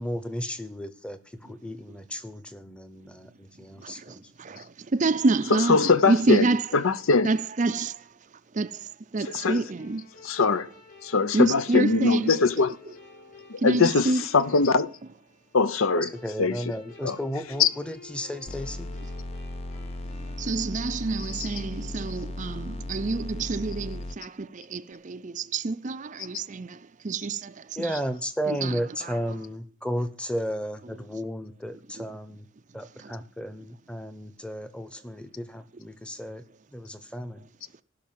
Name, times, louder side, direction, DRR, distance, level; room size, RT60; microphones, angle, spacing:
voice 1, 0.0-4.6 15.9-18.9 27.8-32.5 32.7-36.4 36.7-37.5, equal, 5° left, 0.9 m, -34 dB
voice 2, 3.6-6.8 7.2-10.1 11.3-12.4 12.9-13.0 13.6-14.3 20.2-28.0 28.5-29.2 32.0-32.1 33.0-33.1, right 3 dB, 35° right, 0.5 m, -28 dB
voice 3, 5.7-6.4 6.8-7.3 9.4-9.6 10.3-10.7 11.0-12.7 13.5-14.1 14.3-14.9 15.5-16.1 16.4-16.5 17.0-17.2 17.6-17.7, left 4 dB, 70° left, 0.7 m, -21 dB
sound 1, 9.8-22.5, left 3 dB, 45° left, 6.0 m, -51 dB
sound 2, 18.5-24.2, left 1 dB, 30° left, 0.5 m, -36 dB
15.0 x 5.9 x 7.5 m
head